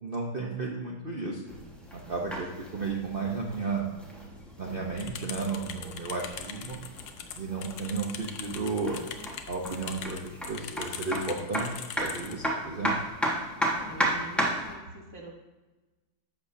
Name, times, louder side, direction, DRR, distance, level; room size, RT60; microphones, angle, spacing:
voice 1, 0.0-1.4 1.9-3.9 4.6-6.8 7.4-9.0 9.5-12.9, right 4 dB, 85° right, -1 dB, 0.5 m, -33 dB
sound 1, 1.5-14.7, right 1 dB, ahead, 0.8 m, -35 dB
sound 2, 5.0-12.3, left 8 dB, 70° left, 1.3 m, -41 dB
voice 2, 13.7-15.4, right 1 dB, 25° left, -2 dB, 0.5 m, -43 dB
11.0 x 7.1 x 2.7 m, 1.2 s
omnidirectional pair, 2.3 m